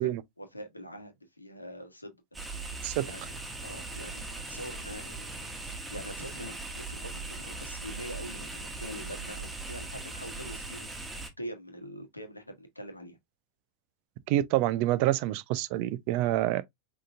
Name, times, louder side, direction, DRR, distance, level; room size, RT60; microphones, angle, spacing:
voice 1, 0.0-2.2 2.9-3.3 3.6-5.5 5.9-13.2, equal, 85° left, 1.4 m, -44 dB
sound 1, 2.3-11.3, right 3 dB, 10° right, 1.4 m, -40 dB
voice 2, 14.3-16.6, right 14 dB, 45° right, 0.6 m, -27 dB
5.2 x 3.8 x 2.4 m
figure-of-eight pair, 90°, 0 cm